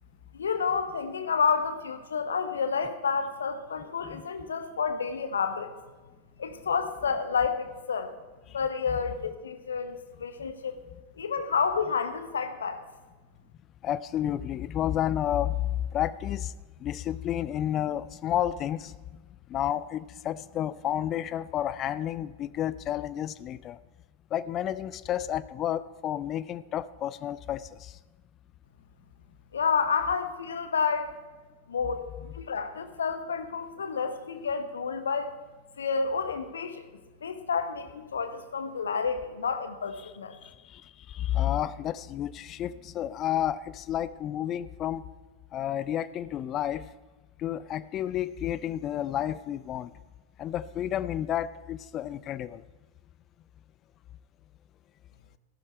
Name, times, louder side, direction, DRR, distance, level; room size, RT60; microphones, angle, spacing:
voice 1, 0.3-5.7 6.4-8.1 8.5-10.7 11.2-12.8 29.5-31.1 31.7-35.3 35.8-36.8 37.2-40.4, left 5 dB, 70° left, 9 dB, 1.1 m, -30 dB
voice 2, 13.8-16.5 16.8-19.0 19.5-23.8 24.3-28.0 40.0-40.1 40.4-45.0 45.5-46.9 47.4-49.9 50.4-52.6, left 11 dB, 30° left, 17 dB, 0.4 m, -31 dB
14.0 x 12.0 x 4.5 m, 1.3 s
figure-of-eight pair, 90°, 0 cm